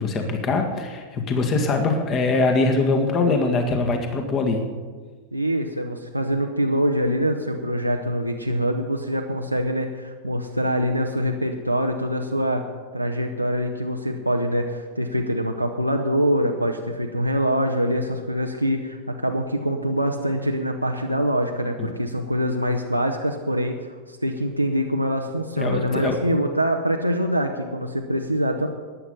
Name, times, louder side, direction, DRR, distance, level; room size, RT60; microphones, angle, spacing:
voice 1, 0.0-4.7 21.8-21.9 25.6-26.2, left 3 dB, 30° left, 4 dB, 1.9 m, -22 dB
voice 2, 5.3-12.7 12.9-28.7, equal, 90° right, 2 dB, 0.8 m, -24 dB
14.0 x 9.9 x 5.6 m, 1.4 s
figure-of-eight pair, 90°, 0 cm